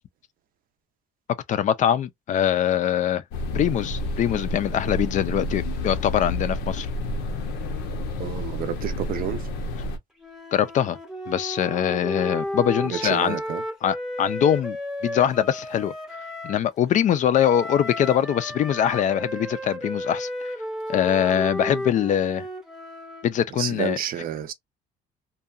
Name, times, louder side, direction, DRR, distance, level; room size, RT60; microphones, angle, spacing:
voice 1, 1.5-3.2 3.5-6.9 10.5-11.0 11.3-13.4 13.8-14.8 15.0-15.9 16.4-20.3 20.9-22.4 23.2-24.0, left 10 dB, 50° left, 0.4 m, -23 dB
sound 1, 3.3-10.0, left 2 dB, 90° left, 0.6 m, -30 dB
voice 2, 8.2-9.5 12.8-13.6 23.6-24.5, right 10 dB, 60° right, 0.5 m, -30 dB
Wind instrument woodwind instrument, 10.2-16.6 17.3-23.4, equal, ahead, 0.7 m, -33 dB
2.7 x 2.3 x 2.3 m
cardioid pair, 110°, 17 cm